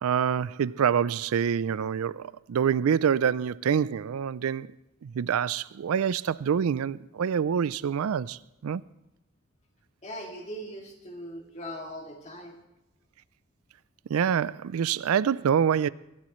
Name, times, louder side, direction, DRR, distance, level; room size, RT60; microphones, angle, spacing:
voice 1, 0.0-4.8 5.0-8.8 14.1-15.9, right 7 dB, 80° right, 0.4 m, -26 dB
voice 2, 10.0-12.6, equal, 30° left, 2.5 m, -40 dB
23.0 x 12.5 x 3.1 m
head